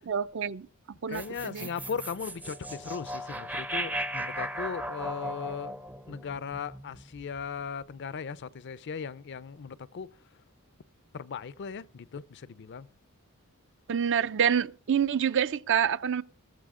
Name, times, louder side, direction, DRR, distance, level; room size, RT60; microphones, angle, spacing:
voice 1, 0.1-0.7 1.0-1.7 13.9-16.2, right 8 dB, 60° right, 0.5 m, -27 dB
voice 2, 1.1-5.7 6.1-10.1 11.1-12.9, left 6 dB, 55° left, 0.5 m, -38 dB
sound 1, 1.1-7.4, right 1 dB, 5° right, 0.5 m, -37 dB
14.5 x 13.5 x 3.7 m
head